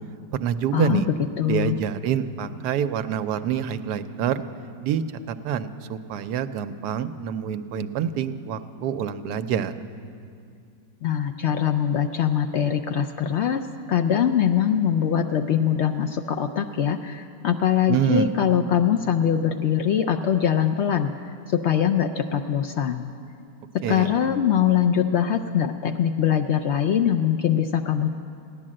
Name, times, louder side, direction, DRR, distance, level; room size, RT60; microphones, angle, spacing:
voice 1, 0.3-1.1 1.5-4.4 4.8-9.7 17.9-18.3 23.8-24.3, right 9 dB, 80° right, 10 dB, 1.2 m, -26 dB
voice 2, 1.4-1.8 11.0-13.6 13.9-21.1 21.5-23.1 23.9-28.1, left 9 dB, 85° left, 6 dB, 0.6 m, -22 dB
16.0 x 11.0 x 7.5 m, 2.4 s
omnidirectional pair, 1.7 m